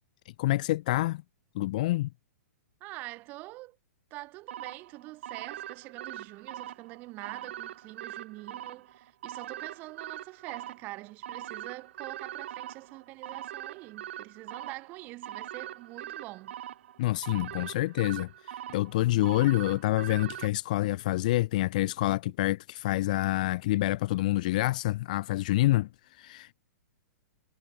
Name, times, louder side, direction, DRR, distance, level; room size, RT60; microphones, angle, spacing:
voice 1, 0.4-1.2 1.5-2.1 17.0-26.5, left 17 dB, 30° left, 0.4 m, -27 dB
voice 2, 2.8-3.8 4.1-16.5, right 20 dB, 20° right, 1.8 m, -45 dB
sound 1, 4.5-20.5, right 12 dB, 45° right, 0.8 m, -42 dB
hypercardioid pair, 175°, 9 cm